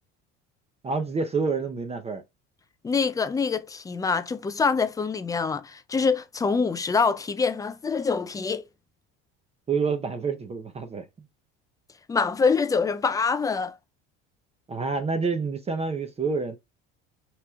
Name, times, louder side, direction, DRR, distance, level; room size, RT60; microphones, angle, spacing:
voice 1, 0.8-2.2 9.7-11.1 14.7-16.6, right 4 dB, 20° right, 0.6 m, -28 dB
voice 2, 2.8-8.7 12.1-13.8, left 5 dB, 15° left, 0.3 m, -25 dB
5.8 x 3.0 x 2.3 m
cardioid pair, 120°, 29 cm